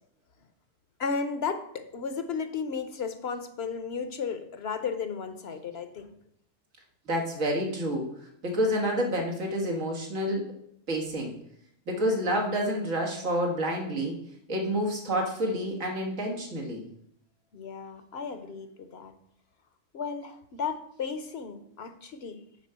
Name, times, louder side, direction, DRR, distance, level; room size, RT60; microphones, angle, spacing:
voice 1, 1.0-6.1 17.5-19.1 19.9-22.4, left 5 dB, 60° left, 10 dB, 1.0 m, -34 dB
voice 2, 7.1-10.4 10.9-11.3 11.9-14.2 14.5-16.9, equal, 90° right, 0 dB, 2.2 m, -29 dB
7.4 x 4.9 x 6.8 m, 0.72 s
omnidirectional pair, 1.3 m